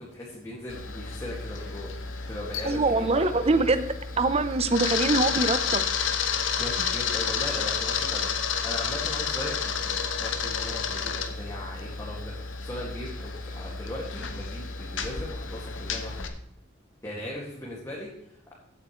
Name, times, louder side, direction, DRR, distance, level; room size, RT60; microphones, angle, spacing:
voice 1, 0.0-1.9 2.3-3.7 6.6-8.3 8.6-12.3 12.6-16.3 17.0-18.1, left 1 dB, 15° left, -5 dB, 2.2 m, -38 dB
Camera, 0.7-16.3, left 6 dB, 75° left, 1.2 m, -31 dB
voice 2, 2.6-3.9 4.2-5.8, right 3 dB, 30° right, 11 dB, 0.8 m, -23 dB
15.5 x 8.6 x 3.2 m, 0.78 s
head